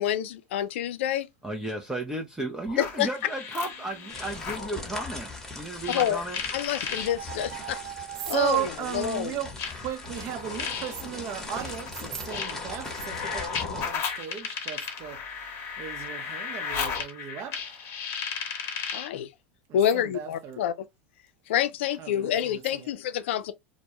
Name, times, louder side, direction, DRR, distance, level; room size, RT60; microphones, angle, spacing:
voice 1, 0.0-1.3 2.8-3.2 5.9-6.2 6.5-7.8 8.3-9.4 18.9-19.3 19.7-20.7 21.5-23.5, left 10 dB, 70° left, 0.4 m, -28 dB
voice 2, 1.4-5.3 5.5-6.4, right 1 dB, 10° right, 0.5 m, -34 dB
sound 1, 2.7-4.7 5.8-7.1 8.2-8.3 9.6-19.2, left 6 dB, 40° left, 0.8 m, -35 dB
sound 2, 3.4-4.2 6.6-8.6, right 12 dB, 75° right, 0.9 m, -42 dB
sound 3, 4.1-13.9, left 2 dB, 5° left, 0.9 m, -40 dB
voice 3, 8.2-15.4 15.8-17.7 19.7-20.6 22.0-22.9, right 11 dB, 45° right, 0.7 m, -35 dB
2.2 x 2.1 x 2.8 m
hypercardioid pair, 100°, 7 cm